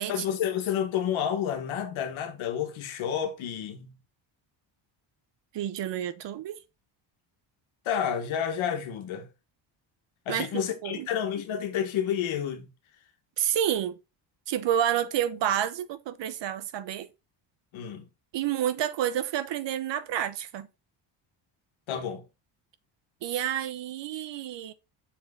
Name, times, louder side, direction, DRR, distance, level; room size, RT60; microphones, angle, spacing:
voice 1, 0.1-3.9 7.8-9.3 10.2-12.7 17.7-18.0 21.9-22.2, left 9 dB, 75° left, 1.5 m, -30 dB
voice 2, 5.5-6.6 10.3-11.1 13.4-14.0 14.5-17.1 18.3-20.7 23.2-24.7, right 10 dB, 60° right, 0.9 m, -29 dB
6.8 x 3.9 x 3.7 m
cardioid pair, 100°, 48 cm